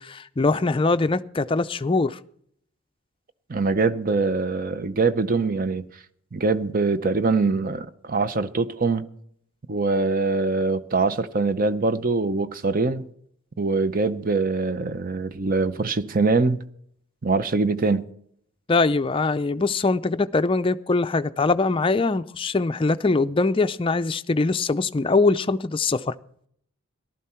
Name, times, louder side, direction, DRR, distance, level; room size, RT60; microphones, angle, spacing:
voice 1, 0.0-2.2 18.7-26.1, left 3 dB, 25° left, 0.4 m, -22 dB
voice 2, 3.5-5.9 6.3-9.0 9.7-13.1 13.6-16.6 17.2-18.1, right 3 dB, 40° right, 0.7 m, -23 dB
15.0 x 12.0 x 4.4 m
head